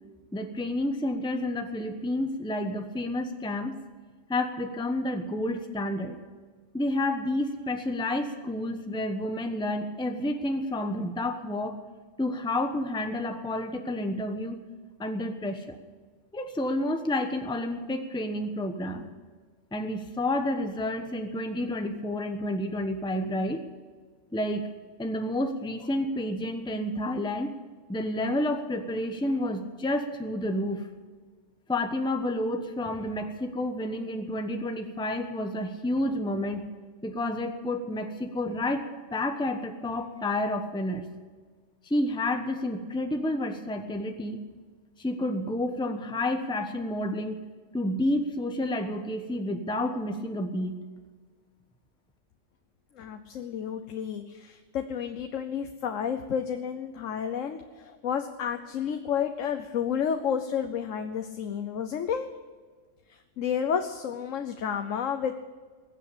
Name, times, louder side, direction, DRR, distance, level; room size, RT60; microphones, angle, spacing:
voice 1, 0.3-3.8 4.3-6.2 6.7-11.8 12.2-14.6 15.0-15.8 16.3-19.1 19.7-23.6 24.3-24.6 25.0-27.5 27.9-30.9 31.7-36.6 37.0-41.0 41.9-44.4 45.0-47.4 47.7-50.8, left 1 dB, 5° left, 6 dB, 1.0 m, -30 dB
voice 2, 53.0-62.3 63.1-65.3, left 7 dB, 85° left, 7 dB, 1.2 m, -31 dB
20.5 x 8.3 x 6.8 m, 1.5 s
omnidirectional pair, 1.3 m